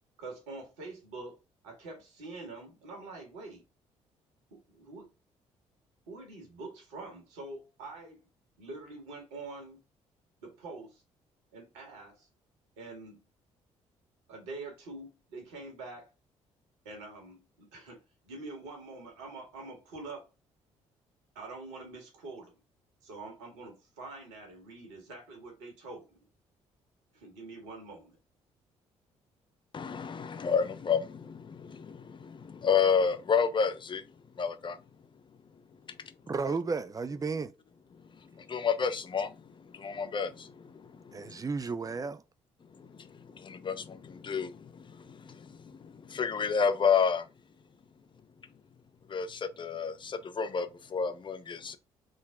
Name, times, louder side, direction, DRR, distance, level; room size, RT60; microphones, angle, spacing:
voice 1, 0.2-1.4 1.6-3.6 4.5-5.1 6.1-8.2 8.6-9.8 10.4-11.0 11.5-12.3 12.8-13.2 14.3-16.1 16.8-20.3 21.3-22.5 23.0-26.3 27.1-28.2, right 3 dB, 80° right, 1.3 m, -45 dB
voice 2, 29.7-34.8 35.9-36.1 37.9-41.4 42.7-47.3 49.1-51.8, left 6 dB, 35° left, 0.6 m, -31 dB
voice 3, 36.3-37.5 41.1-42.2, right 4 dB, 25° right, 0.5 m, -33 dB
3.8 x 2.1 x 3.6 m
hypercardioid pair, 45°, 15 cm